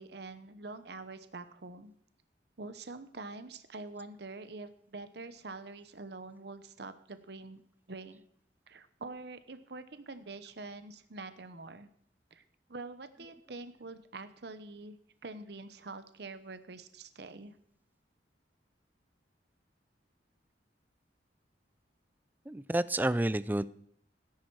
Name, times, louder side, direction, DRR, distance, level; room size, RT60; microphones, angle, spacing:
voice 1, 0.0-1.9 2.6-7.6 7.9-8.2 8.7-11.9 12.3-12.4 12.7-15.0 15.2-17.6, right 3 dB, 65° right, 11 dB, 0.9 m, -45 dB
voice 2, 22.5-23.7, right 1 dB, 10° right, 17 dB, 0.4 m, -30 dB
17.5 x 10.5 x 4.7 m, 0.67 s
head